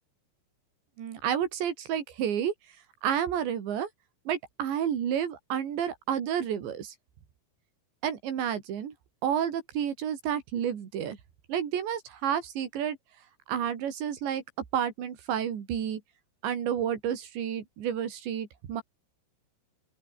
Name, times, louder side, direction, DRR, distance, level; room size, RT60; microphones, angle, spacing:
voice 1, 1.0-2.5 3.0-3.9 4.3-6.9 8.0-8.9 9.2-11.2 11.5-13.0 13.5-14.4 14.7-16.0 16.4-18.8, right 9 dB, 75° right, 5.4 m, -30 dB
open air
omnidirectional pair, 5.2 m